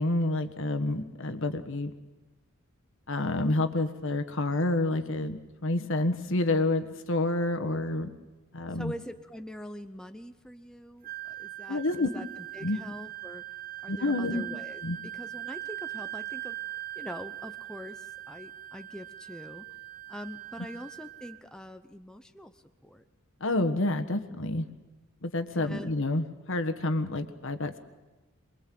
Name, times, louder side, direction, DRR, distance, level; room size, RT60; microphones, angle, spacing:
voice 1, 0.0-1.9 3.1-8.1 8.5-8.9 11.7-12.1 12.6-12.8 13.9-14.4 14.8-15.0 23.4-24.7 25.2-27.8, left 2 dB, 60° left, 8 dB, 1.4 m, -28 dB
voice 2, 8.8-12.3 12.5-13.4 13.8-16.6 17.0-19.7 20.1-23.0 25.5-25.9, equal, 5° left, 7 dB, 0.7 m, -44 dB
Wind instrument woodwind instrument, 11.0-21.4, right 14 dB, 40° right, 0.9 m, -41 dB
24.5 x 21.5 x 7.7 m, 1.2 s
head